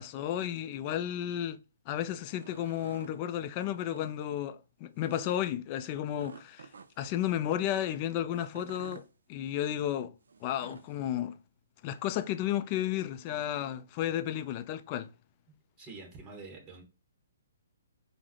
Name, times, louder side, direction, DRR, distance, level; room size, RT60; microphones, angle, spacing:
voice 1, 0.0-1.6 1.9-6.7 7.0-9.0 9.3-10.1 10.4-11.4 11.8-15.1, left 11 dB, 30° left, 0.3 m, -33 dB
sound 1, 2.2-3.2 3.8-4.1 5.0-5.4 6.2-7.2 8.3-9.1 10.3-10.9, right 5 dB, 75° right, 0.4 m, -49 dB
voice 2, 15.8-16.8, right 3 dB, 20° right, 2.1 m, -46 dB
5.3 x 2.0 x 3.3 m
hypercardioid pair, 145°, 0 cm